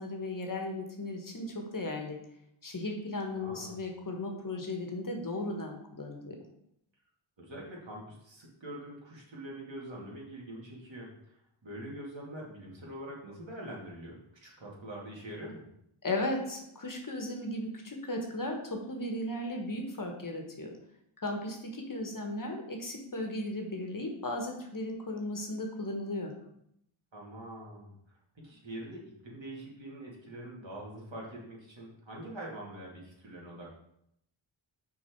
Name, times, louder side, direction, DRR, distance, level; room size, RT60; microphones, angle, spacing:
voice 1, 0.0-2.2 2.6-6.4 16.0-20.7 21.2-26.3, left 1 dB, 40° left, 2 dB, 1.4 m, -36 dB
voice 2, 3.3-3.8 7.4-11.1 11.6-15.6 27.1-27.9 28.4-33.8, right 1 dB, 60° right, -4 dB, 2.7 m, -44 dB
6.1 x 4.6 x 4.6 m, 0.76 s
cardioid pair, 65°, 49 cm